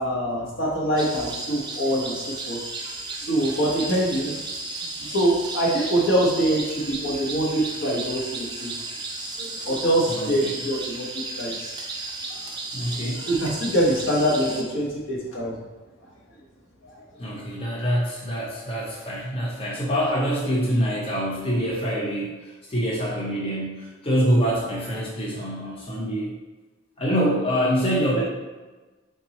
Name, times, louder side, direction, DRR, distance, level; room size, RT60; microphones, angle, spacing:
voice 1, 0.0-2.6 3.2-4.3 5.0-8.7 9.4-11.1 11.4-11.6 13.2-15.5, right 1 dB, 70° left, -4 dB, 1.1 m, -24 dB
sound 1, 1.0-14.6, right 3 dB, 20° right, 0.4 m, -34 dB
voice 2, 10.1-10.5 12.7-13.3 17.2-26.3 27.0-28.2, equal, 30° left, -5 dB, 0.6 m, -25 dB
3.5 x 2.9 x 4.1 m, 1.2 s
head